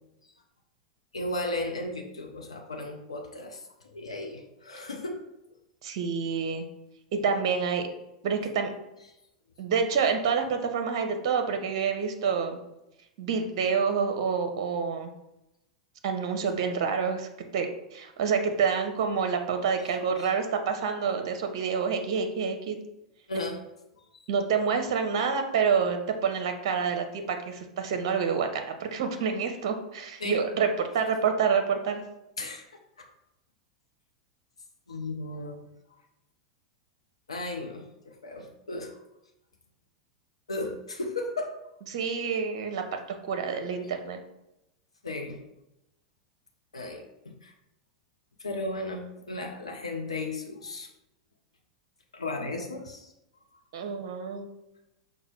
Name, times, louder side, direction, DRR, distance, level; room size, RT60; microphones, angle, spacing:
voice 1, 1.1-5.2 20.2-20.3 23.3-23.6 24.1-24.3 30.2-30.5 32.4-32.7 33.0-33.1 34.9-35.6 37.3-39.0 40.5-41.6 45.0-45.4 46.7-47.0 47.4-47.5 48.4-50.9 52.1-53.1, left 2 dB, 85° left, 2 dB, 0.6 m, -35 dB
voice 2, 5.8-6.6 7.1-7.9 8.2-8.7 9.6-12.6 13.2-15.1 16.0-22.8 24.3-32.0 41.9-44.2 53.7-54.5, right 6 dB, 55° right, 6 dB, 0.6 m, -28 dB
5.6 x 2.1 x 4.3 m, 0.89 s
figure-of-eight pair, 90°, 3 cm